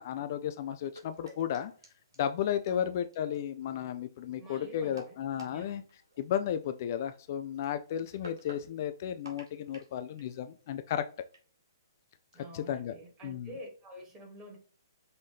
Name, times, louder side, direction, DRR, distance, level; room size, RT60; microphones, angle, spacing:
voice 1, 0.0-1.7 2.2-5.8 6.2-11.1 12.5-12.9 13.2-13.5, left 9 dB, 45° left, 0.3 m, -33 dB
sound 1, 0.8-11.4, left 1 dB, 70° right, 1.8 m, -53 dB
voice 2, 4.4-5.2 5.5-5.8 12.3-14.6, right 1 dB, 20° right, 1.6 m, -48 dB
5.4 x 2.6 x 3.3 m
figure-of-eight pair, 120°, 2 cm